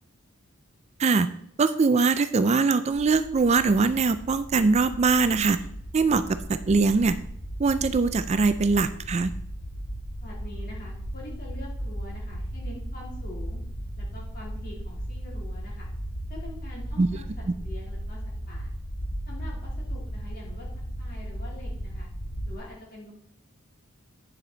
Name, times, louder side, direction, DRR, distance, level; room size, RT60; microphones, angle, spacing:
voice 1, 1.6-5.6 5.9-7.2 7.6-9.3 17.0-17.1, right 4 dB, 30° right, 12 dB, 0.3 m, -22 dB
sound 1, 2.9-22.6, equal, 80° left, 2.1 m, -36 dB
voice 2, 10.2-13.6 14.0-15.9 16.3-18.2 18.5-18.7 19.3-20.7 21.0-22.1 22.5-23.1, left 2 dB, 45° left, -3 dB, 3.2 m, -45 dB
9.3 x 7.2 x 3.9 m, 0.69 s
head